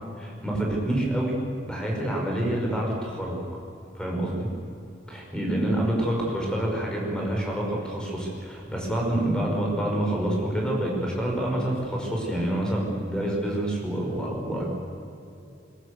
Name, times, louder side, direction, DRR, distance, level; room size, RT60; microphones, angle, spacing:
voice 1, 0.2-1.4 1.6-3.4 3.9-4.5 5.1-14.7, right 1 dB, 5° left, -2 dB, 5.4 m, -27 dB
21.0 x 20.0 x 8.2 m, 2.7 s
head